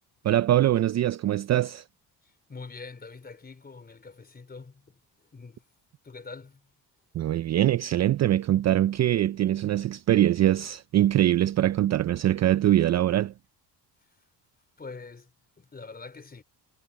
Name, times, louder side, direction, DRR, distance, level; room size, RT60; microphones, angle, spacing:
voice 1, 0.2-1.8 7.1-13.3, right 12 dB, 45° right, 0.4 m, -23 dB
voice 2, 2.2-5.6 6.0-6.7 14.8-15.3 15.6-16.4, left 4 dB, 25° left, 4.0 m, -44 dB
cardioid pair, 130°, 40 cm